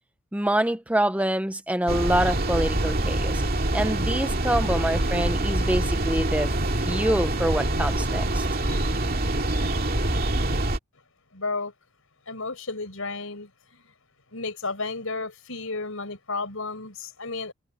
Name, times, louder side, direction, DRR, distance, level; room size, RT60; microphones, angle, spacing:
voice 1, 0.3-3.4 3.7-8.5, right 1 dB, 5° right, 0.7 m, -26 dB
sound 1, 1.9-10.8, right 1 dB, 45° right, 2.5 m, -25 dB
voice 2, 11.3-11.7 12.3-13.8 14.3-17.5, left 3 dB, 70° left, 5.1 m, -32 dB
head